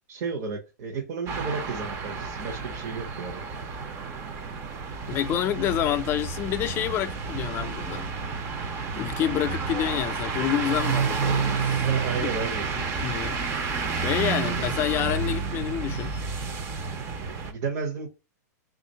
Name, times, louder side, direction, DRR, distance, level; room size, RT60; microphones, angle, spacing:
voice 1, 0.1-3.4 11.8-12.7 17.2-18.1, right 5 dB, 50° right, 1.0 m, -32 dB
sound 1, 1.3-17.5, right 5 dB, 25° right, 0.6 m, -30 dB
voice 2, 5.1-8.1 9.0-11.9 12.1-12.3 12.8-16.2, left 12 dB, 25° left, 0.4 m, -28 dB
3.5 x 2.5 x 4.0 m
hypercardioid pair, 145°, 9 cm